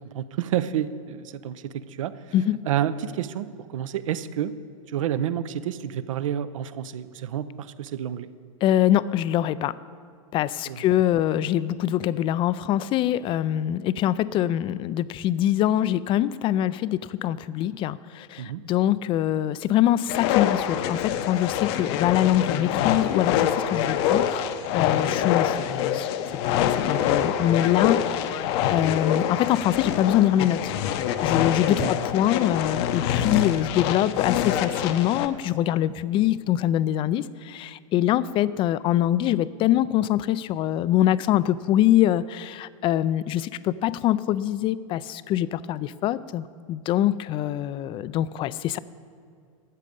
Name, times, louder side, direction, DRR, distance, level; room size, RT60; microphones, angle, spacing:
voice 1, 0.1-2.3 2.6-4.5 4.9-8.3 10.7-10.9 18.4-18.6 31.8-31.9, right 10 dB, 70° right, 14 dB, 0.6 m, -29 dB
voice 2, 8.6-9.7 10.3-26.1 26.4-28.4 28.7-30.6 31.2-48.8, left 12 dB, 30° left, 18 dB, 0.4 m, -24 dB
sound 1, 20.1-35.3, left 10 dB, 50° left, 0.8 m, -25 dB
13.0 x 8.3 x 5.1 m, 2.3 s
hypercardioid pair, 100°, 18 cm